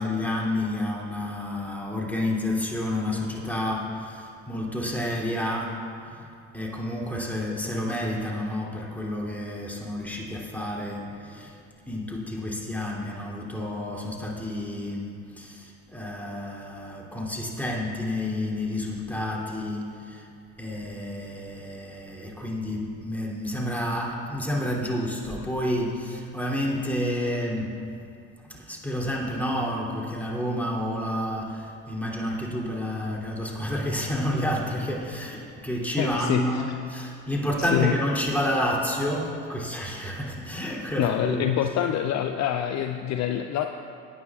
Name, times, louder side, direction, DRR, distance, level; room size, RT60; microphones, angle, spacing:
voice 1, 0.0-6.3 6.5-11.6 11.9-20.3 20.6-27.8 28.5-41.6, left 1 dB, 5° left, -4 dB, 2.9 m, -30 dB
voice 2, 36.0-36.6 37.6-37.9 41.0-43.7, left 11 dB, 50° left, 6 dB, 0.6 m, -26 dB
19.5 x 9.5 x 2.4 m, 2.6 s
hypercardioid pair, 65°, 36 cm